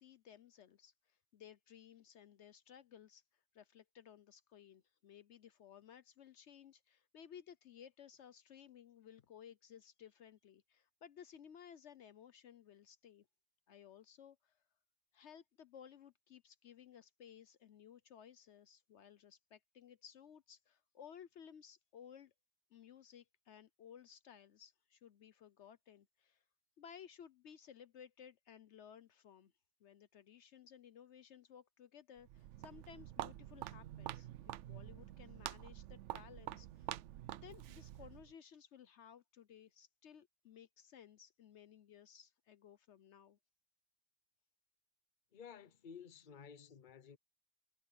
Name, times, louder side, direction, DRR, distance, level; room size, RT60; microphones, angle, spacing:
voice 1, 0.0-13.3 13.7-14.6 15.1-22.3 22.7-26.4 26.8-29.5 29.8-36.9 37.3-43.4, left 8 dB, 70° left, 1.0 m, -58 dB
Walk footsteps, 32.2-38.3, right 13 dB, 75° right, 0.9 m, -47 dB
voice 2, 45.3-47.2, left 7 dB, 45° left, 1.0 m, -54 dB
omnidirectional pair, 1.2 m